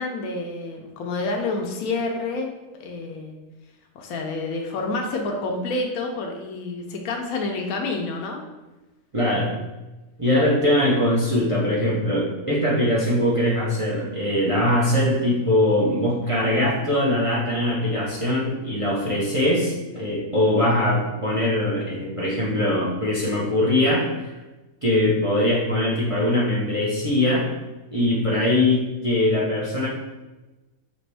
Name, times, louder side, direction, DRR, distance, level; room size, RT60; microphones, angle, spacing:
voice 1, 0.0-3.3 3.9-8.4, left 3 dB, 75° left, 1 dB, 1.0 m, -28 dB
voice 2, 9.1-9.5 10.2-24.3 24.8-27.5 27.9-29.9, left 1 dB, 30° right, -5 dB, 0.7 m, -22 dB
5.1 x 3.0 x 3.3 m, 1.1 s
omnidirectional pair, 1.6 m